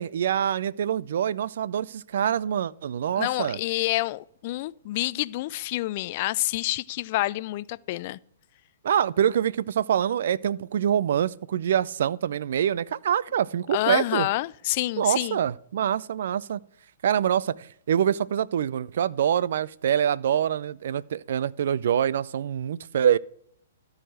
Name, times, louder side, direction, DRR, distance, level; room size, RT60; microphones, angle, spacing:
voice 1, 0.0-3.6 8.8-14.3 15.0-16.6 17.0-23.2, right 9 dB, 60° right, 0.4 m, -25 dB
voice 2, 3.2-8.2 13.7-15.4, left 18 dB, 45° left, 0.4 m, -28 dB
13.5 x 4.9 x 7.8 m
hypercardioid pair, 120°, 0 cm